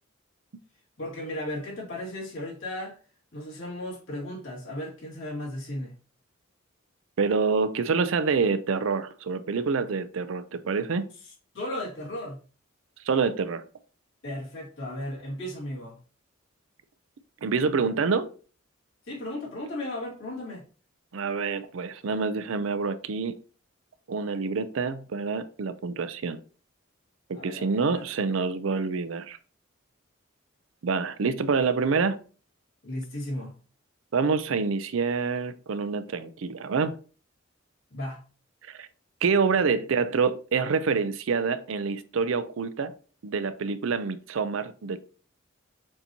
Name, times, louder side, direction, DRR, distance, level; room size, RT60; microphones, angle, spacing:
voice 1, 1.0-3.0 3.3-5.9 11.3-12.4 14.2-16.0 19.1-20.6 27.3-28.1 32.8-33.6 37.9-38.3, left 1 dB, 65° left, 2.2 m, -35 dB
voice 2, 7.2-11.1 13.0-13.6 17.4-18.3 21.1-23.4 24.1-26.4 27.3-29.4 30.8-32.2 34.1-37.0 38.7-38.9 39.2-42.9 43.2-45.0, right 5 dB, 75° right, 0.4 m, -27 dB
6.6 x 2.7 x 2.9 m
head